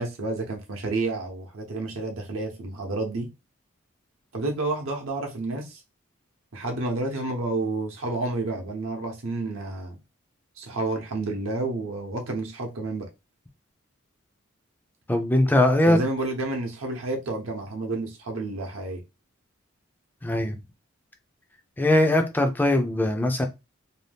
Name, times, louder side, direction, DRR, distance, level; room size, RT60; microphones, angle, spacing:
voice 1, 0.0-3.3 4.3-5.8 6.5-10.0 10.6-13.1 15.9-19.0, right 2 dB, 80° right, 0.7 m, -30 dB
voice 2, 15.1-16.0 20.2-20.6 21.8-23.5, left 1 dB, 10° left, 0.3 m, -21 dB
2.7 x 2.2 x 3.3 m
head